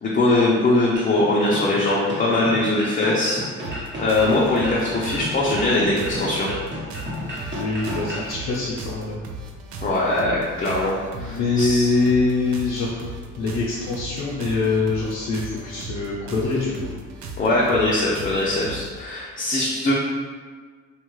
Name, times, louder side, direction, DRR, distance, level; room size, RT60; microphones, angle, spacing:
voice 1, 0.0-6.5 9.8-11.9 17.4-19.9, left 2 dB, 30° left, -5 dB, 0.5 m, -21 dB
sound 1, 0.9-8.3, equal, 40° right, 0.9 m, -32 dB
sound 2, 3.6-19.0, right 2 dB, 70° right, 0.4 m, -37 dB
voice 2, 7.5-9.2 11.1-13.1 13.4-16.9, left 3 dB, 80° left, -7 dB, 0.6 m, -24 dB
2.8 x 2.3 x 3.0 m, 1.5 s
cardioid pair, 90°, 30 cm